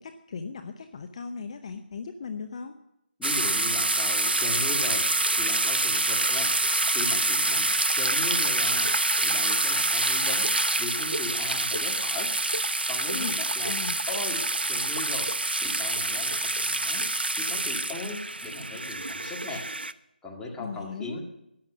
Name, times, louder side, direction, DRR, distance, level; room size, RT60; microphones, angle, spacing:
voice 1, 0.0-2.7 13.1-14.0 20.6-21.2, left 5 dB, 40° left, 7 dB, 0.8 m, -37 dB
voice 2, 3.2-6.5 6.9-8.9 9.2-10.5 10.8-12.3 12.9-15.3 15.6-17.1 17.4-19.6 20.2-21.2, left 3 dB, 5° left, -3 dB, 2.0 m, -38 dB
sound 1, 3.2-19.9, right 2 dB, 80° right, 0.7 m, -26 dB
13.5 x 10.5 x 6.4 m, 0.82 s
figure-of-eight pair, 150°, 5 cm